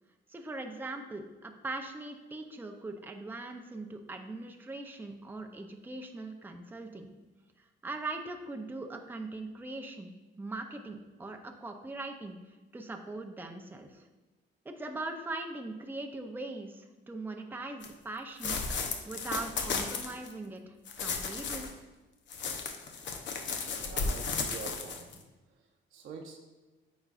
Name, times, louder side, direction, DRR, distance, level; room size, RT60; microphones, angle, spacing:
voice 1, 0.3-7.1 7.8-12.4 12.7-14.0 14.6-18.6 19.1-21.7, right 2 dB, 10° right, 4 dB, 0.6 m, -41 dB
sound 1, 17.8-17.9 18.4-20.3 20.9-21.7 22.3-25.2, left 4 dB, 65° left, 0.8 m, -34 dB
voice 2, 23.8-25.2 25.9-26.4, right 4 dB, 85° right, 0 dB, 1.1 m, -45 dB
8.9 x 5.1 x 2.5 m, 1.2 s
cardioid pair, 90°, 20 cm